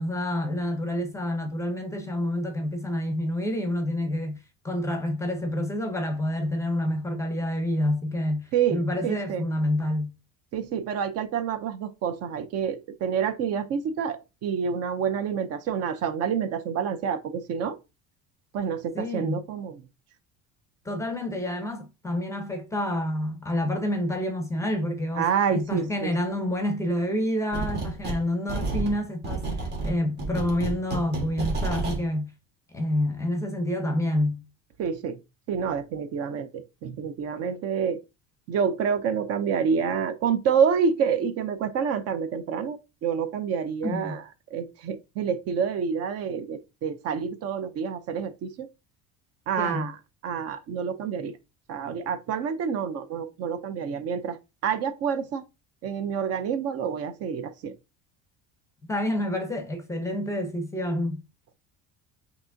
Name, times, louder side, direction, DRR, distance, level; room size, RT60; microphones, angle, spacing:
voice 1, 0.0-4.4 4.6-10.2 18.9-19.4 20.8-32.3 32.7-34.4 43.8-44.2 49.5-49.9 58.9-61.2, left 1 dB, 10° left, 0.7 m, -28 dB
voice 2, 8.5-9.4 10.5-17.8 18.5-19.8 25.2-26.1 34.8-35.2 35.5-36.5 36.8-38.0 38.5-44.2 44.5-48.7 49.5-49.9 50.2-51.3 51.7-54.4 54.6-55.4 55.8-57.7, right 7 dB, 50° right, 0.5 m, -28 dB
sound 1, 27.5-28.2 28.5-32.0, right 3 dB, 35° right, 1.4 m, -30 dB
5.8 x 2.9 x 2.6 m
cardioid pair, 160°, 31 cm